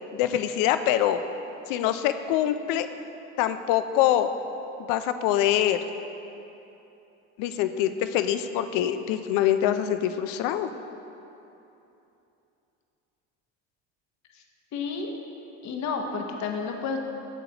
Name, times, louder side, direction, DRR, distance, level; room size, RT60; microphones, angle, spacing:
voice 1, 0.1-1.2 1.7-2.9 3.4-4.3 4.9-5.8 7.4-10.7, left 11 dB, 70° left, 10 dB, 0.5 m, -24 dB
voice 2, 14.7-15.1 15.6-17.0, left 5 dB, 55° left, 3 dB, 1.0 m, -31 dB
8.1 x 6.9 x 2.9 m, 2.9 s
supercardioid pair, 85°, 34 cm